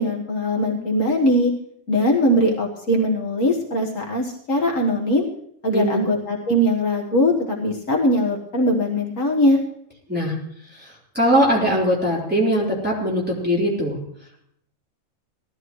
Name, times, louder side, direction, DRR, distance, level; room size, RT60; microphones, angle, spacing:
voice 1, 0.0-1.5 1.9-5.3 5.6-9.6, equal, 65° left, 0 dB, 1.9 m, -20 dB
voice 2, 5.7-6.0 10.1-10.4 10.7-14.0, equal, 5° right, -5 dB, 3.9 m, -21 dB
18.5 x 13.5 x 3.1 m, 0.70 s
omnidirectional pair, 1.5 m